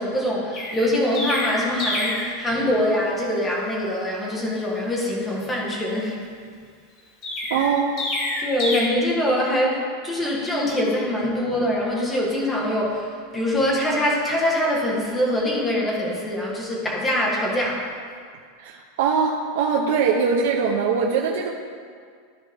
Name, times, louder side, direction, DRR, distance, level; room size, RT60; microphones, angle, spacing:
voice 1, 0.0-6.2 8.4-17.9, left 1 dB, 10° left, -4 dB, 1.4 m, -24 dB
Chirp tweet, 0.5-2.3 7.2-8.8, left 2 dB, 30° left, 1.7 m, -27 dB
voice 2, 7.5-7.9 18.6-21.5, right 5 dB, 70° right, -2 dB, 0.8 m, -22 dB
14.0 x 4.7 x 3.5 m, 2.1 s
supercardioid pair, 165°, 0 cm